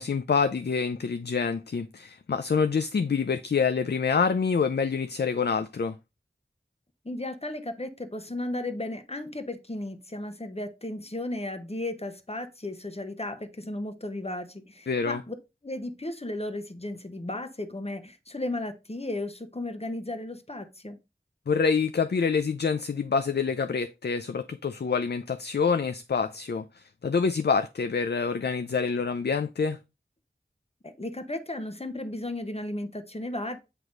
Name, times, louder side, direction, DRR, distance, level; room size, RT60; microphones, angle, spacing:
voice 1, 0.0-5.9 14.9-15.2 21.5-29.8, left 5 dB, 60° left, 0.4 m, -26 dB
voice 2, 7.0-15.3 15.6-21.0 30.8-33.6, left 1 dB, 30° left, 1.0 m, -35 dB
8.0 x 3.0 x 5.1 m
wide cardioid pair, 40°, 19 cm